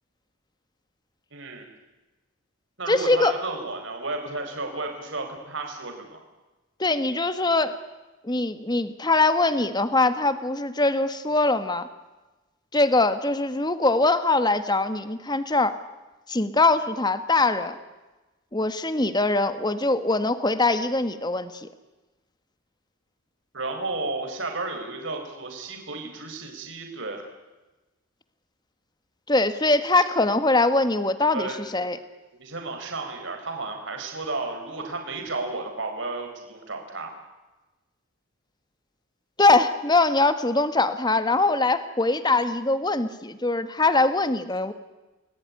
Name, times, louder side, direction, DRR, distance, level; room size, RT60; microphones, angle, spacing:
voice 1, 1.3-1.7 2.8-6.2 23.5-27.2 31.3-31.6 32.3-37.1, right 3 dB, 60° right, 3 dB, 4.7 m, -33 dB
voice 2, 2.9-3.3 6.8-7.7 8.2-11.9 12.7-15.8 16.3-17.8 18.5-21.7 29.3-32.0 39.4-44.7, left 2 dB, 20° left, 11 dB, 1.5 m, -22 dB
29.5 x 20.5 x 9.8 m, 1.1 s
head